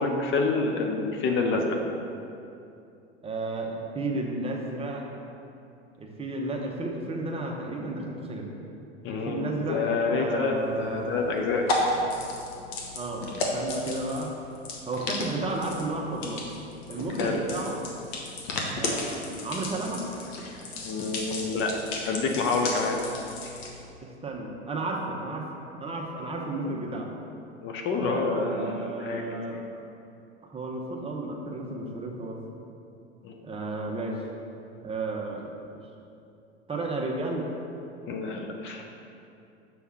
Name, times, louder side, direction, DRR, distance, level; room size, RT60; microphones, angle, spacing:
voice 1, 0.0-1.8 9.0-11.9 17.2-17.4 20.8-21.7 22.1-23.0 26.9-27.0 27.6-29.6 33.2-33.4 38.1-38.8, left 4 dB, 35° left, 2 dB, 0.7 m, -28 dB
voice 2, 3.2-5.1 6.0-8.5 9.1-9.8 10.1-11.2 12.9-14.3 14.9-16.4 16.9-17.8 18.8-20.1 24.0-25.4 25.8-27.1 27.9-29.6 30.4-32.4 33.4-34.2 34.8-35.5 36.7-37.5, right 2 dB, 15° right, -1 dB, 1.0 m, -33 dB
sound 1, 10.6-23.8, left 2 dB, 60° left, 1.1 m, -34 dB
6.3 x 3.5 x 5.7 m, 2.7 s
hypercardioid pair, 85°, 34 cm